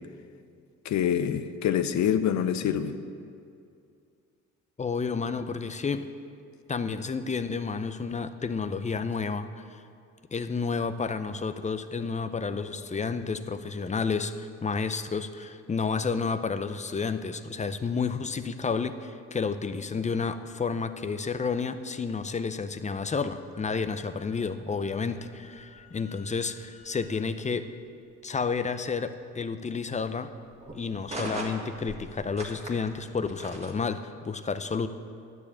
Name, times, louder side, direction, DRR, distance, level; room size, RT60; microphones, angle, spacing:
voice 1, 0.8-3.0, left 9 dB, 70° left, 11 dB, 0.7 m, -26 dB
voice 2, 4.8-6.1 6.7-9.8 10.3-27.7 28.2-30.3 30.8-34.9, left 5 dB, 25° left, 10 dB, 0.6 m, -31 dB
sound 1, 23.5-33.8, right 1 dB, 20° right, 1.7 m, -44 dB
10.0 x 6.8 x 8.5 m, 2.4 s
cardioid pair, 90°, 30 cm